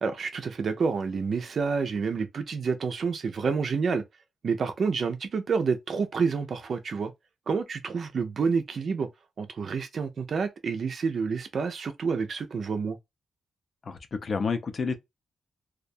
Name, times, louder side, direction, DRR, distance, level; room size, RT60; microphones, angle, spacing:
voice 1, 0.0-4.0 4.4-7.1 7.5-9.1 9.4-13.0, right 5 dB, 45° right, 0.3 m, -28 dB
voice 2, 13.9-14.9, left 5 dB, 35° left, 0.4 m, -29 dB
2.3 x 2.2 x 2.5 m
wide cardioid pair, 180°, 0 cm